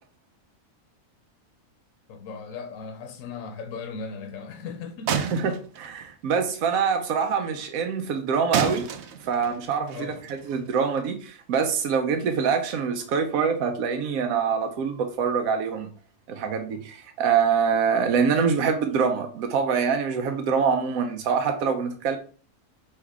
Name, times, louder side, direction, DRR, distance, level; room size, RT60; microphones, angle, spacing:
voice 1, 2.1-5.3 9.9-10.2, left 5 dB, 75° left, 1.0 m, -37 dB
sound 1, 5.1-6.3 8.5-11.0, right 7 dB, 65° right, 0.8 m, -31 dB
voice 2, 5.1-8.9 9.2-15.9 16.3-22.2, right 6 dB, 90° right, 1.1 m, -25 dB
4.5 x 3.2 x 3.5 m
omnidirectional pair, 1.4 m